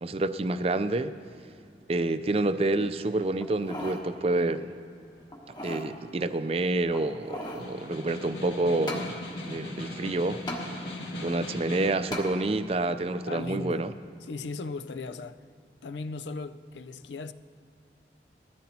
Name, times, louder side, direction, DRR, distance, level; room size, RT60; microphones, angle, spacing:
voice 1, 0.0-1.1 1.9-4.8 5.6-9.1 9.4-10.4 11.2-13.9, right 2 dB, 35° right, 0.4 m, -28 dB
sound 1, 3.4-4.0 4.5-4.6 5.3-5.9 6.9-7.7 8.9-9.1 10.5-10.6 12.1-12.3 12.9-13.0, left 1 dB, 25° left, 1.4 m, -36 dB
Snare drum, 7.6-12.1, left 1 dB, 75° left, 1.9 m, -38 dB
voice 2, 13.3-13.9 14.2-15.4 15.8-17.3, left 3 dB, 90° left, 0.5 m, -37 dB
19.5 x 14.5 x 2.8 m
head